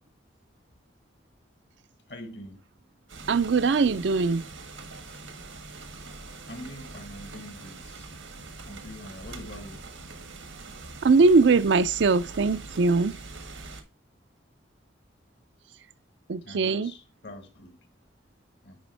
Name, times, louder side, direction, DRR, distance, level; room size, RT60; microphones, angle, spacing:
voice 1, 2.1-2.6 6.5-8.0 8.7-9.8 16.4-17.8 18.6-18.8, left 1 dB, 60° left, 1.6 m, -43 dB
sound 1, 3.1-13.8, right 3 dB, 90° right, 1.5 m, -43 dB
voice 2, 3.3-4.4 11.0-13.2 16.3-16.9, right 4 dB, 70° right, 0.5 m, -21 dB
10.0 x 4.4 x 3.3 m
head